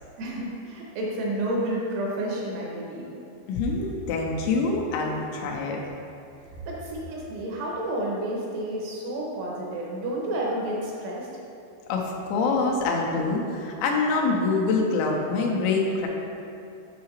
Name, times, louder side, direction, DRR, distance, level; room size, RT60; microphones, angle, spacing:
voice 1, 0.2-3.2 6.7-11.4, right 1 dB, 75° right, -3 dB, 2.8 m, -30 dB
voice 2, 3.5-5.8 11.9-16.1, left 3 dB, 90° left, 0 dB, 2.9 m, -25 dB
8.4 x 5.6 x 3.1 m, 2.6 s
omnidirectional pair, 5.2 m